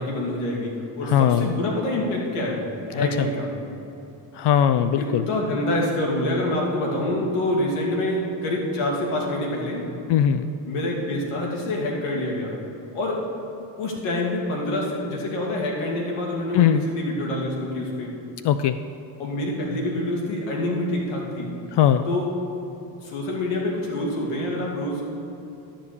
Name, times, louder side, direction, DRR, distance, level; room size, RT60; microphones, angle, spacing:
voice 1, 0.0-2.6 2.9-3.5 5.0-9.8 10.7-12.6 12.9-13.2 13.8-18.1 19.2-21.5 22.1-22.3 23.0-25.1, left 1 dB, 80° left, -2 dB, 2.7 m, -26 dB
voice 2, 1.0-1.5 4.3-5.2 10.1-10.5 16.5-16.9 18.4-18.8 21.7-22.1, left 10 dB, 55° left, 11 dB, 0.5 m, -19 dB
12.0 x 5.1 x 8.4 m, 3.0 s
supercardioid pair, 80°, 49 cm